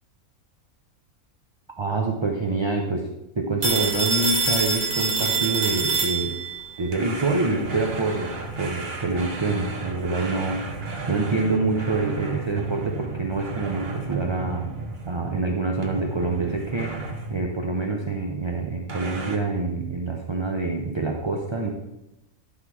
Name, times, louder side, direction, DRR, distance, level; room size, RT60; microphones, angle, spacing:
voice 1, 1.8-3.1 3.4-6.3 6.8-14.7 15.1-21.7, right 3 dB, 30° right, 1 dB, 0.5 m, -26 dB
Telephone, 3.6-6.6, right 4 dB, 80° right, 2.2 m, -24 dB
sound 1, 6.9-15.4 15.8-17.5 18.9-19.4, right 3 dB, 45° right, 1.2 m, -34 dB
11.5 x 3.9 x 6.1 m, 0.93 s
omnidirectional pair, 1.5 m